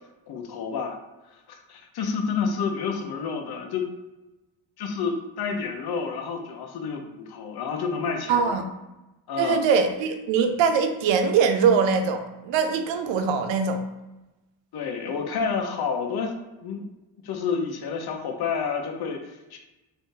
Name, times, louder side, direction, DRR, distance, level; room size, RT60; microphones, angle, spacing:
voice 1, 0.3-1.0 1.5-3.9 4.8-8.6 9.3-9.6 14.7-16.4 16.6-16.8 17.2-19.6, left 5 dB, 60° left, 3 dB, 0.7 m, -29 dB
voice 2, 8.3-8.6 9.4-13.8, right 6 dB, 90° right, 6 dB, 0.5 m, -22 dB
2.6 x 2.6 x 3.6 m, 1.0 s
cardioid pair, 75°, 43 cm